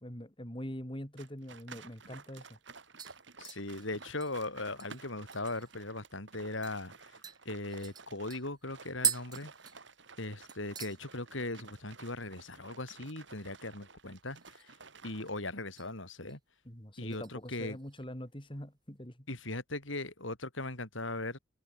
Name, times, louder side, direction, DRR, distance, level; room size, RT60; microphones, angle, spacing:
voice 1, 0.0-2.5 16.6-19.3, equal, 25° left, 4.2 m, -43 dB
sound 1, 1.2-15.3, right 4 dB, 65° right, 3.6 m, -53 dB
sound 2, 1.9-2.0 2.4-2.7 3.0-5.8 6.2-6.3 6.6-6.8 7.2-10.2 10.5-11.0 11.3-11.7 12.0-12.1 14.2-14.8 15.2-15.9 16.3-16.6 17.1-18.0 18.4-18.5, right 8 dB, 20° right, 1.1 m, -40 dB
voice 2, 3.4-6.9 7.5-9.5 10.2-14.7 15.0-16.4 17.0-17.8 19.3-21.4, left 2 dB, 75° left, 5.3 m, -39 dB
head